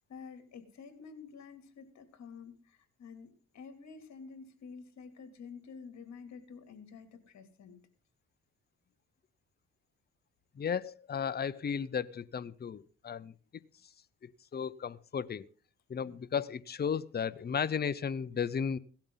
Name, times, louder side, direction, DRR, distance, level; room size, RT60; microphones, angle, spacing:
voice 1, 0.1-7.8 14.5-14.6, left 5 dB, 60° left, 8 dB, 3.2 m, -50 dB
voice 2, 10.6-13.3 14.2-15.5 15.9-18.8, left 7 dB, 35° left, 16 dB, 0.8 m, -34 dB
17.5 x 13.0 x 4.0 m, 0.38 s
cardioid pair, 90°, 30 cm